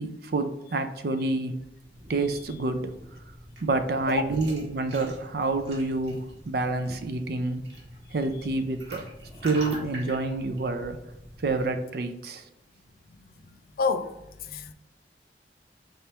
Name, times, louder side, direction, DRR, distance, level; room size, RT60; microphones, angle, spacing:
voice 1, 0.0-1.6 2.1-2.9 3.6-7.6 8.1-9.0 9.4-11.0 11.4-12.4, right 2 dB, 60° right, 0.4 m, -28 dB
sound 1, 1.7-11.7, right 1 dB, 85° right, 1.4 m, -45 dB
voice 2, 4.1-4.2 13.8-14.1 14.5-14.7, left 4 dB, 55° left, 0.3 m, -26 dB
4.2 x 3.4 x 2.9 m
head